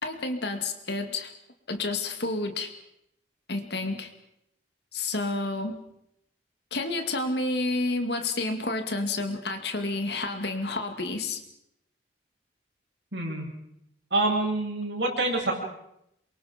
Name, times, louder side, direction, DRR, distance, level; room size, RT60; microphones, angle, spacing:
voice 1, 0.0-1.3 1.7-2.7 3.5-4.1 4.9-5.8 6.7-11.4, left 2 dB, 65° left, 6 dB, 2.3 m, -30 dB
voice 2, 13.1-13.5 14.1-15.5, right 2 dB, 70° right, -1 dB, 7.8 m, -26 dB
27.5 x 23.5 x 5.2 m, 0.79 s
head